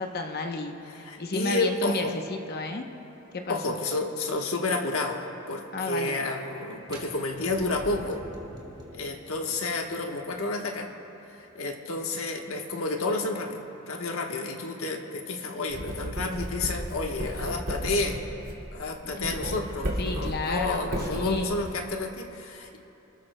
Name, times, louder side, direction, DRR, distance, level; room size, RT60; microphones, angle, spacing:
voice 1, 0.0-2.9 3.3-3.8 5.7-6.2 19.1-19.3 20.0-21.5, left 2 dB, 50° left, 4 dB, 0.8 m, -32 dB
voice 2, 0.9-2.1 3.5-8.2 8.9-10.9 11.3-18.2 18.7-22.8, left 2 dB, 75° left, 2 dB, 1.2 m, -30 dB
sound 1, 6.9-12.7, right 1 dB, 20° right, 2.2 m, -47 dB
Writing, 15.7-21.7, equal, 75° right, 2.3 m, -34 dB
28.5 x 13.5 x 2.2 m, 2.9 s
head